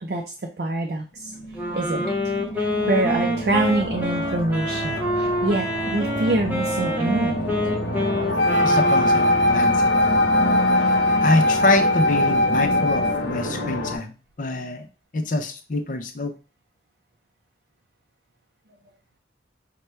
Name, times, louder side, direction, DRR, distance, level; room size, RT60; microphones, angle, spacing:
voice 1, 0.0-1.4 1.7-2.1 2.5-7.3, right 2 dB, 55° right, 1 dB, 0.5 m, -25 dB
sound 1, 1.2-14.0, equal, 70° left, 1.0 m, -29 dB
Wind instrument woodwind instrument, 1.5-9.8, equal, 10° right, 0.6 m, -27 dB
Wind instrument woodwind instrument 2, 8.4-13.3, left 1 dB, 85° left, 0.5 m, -20 dB
voice 2, 8.6-10.2 10.8-11.0 11.2-14.9 15.1-16.3, left 2 dB, 45° left, 6 dB, 0.5 m, -25 dB
5.5 x 2.2 x 3.2 m, 0.34 s
head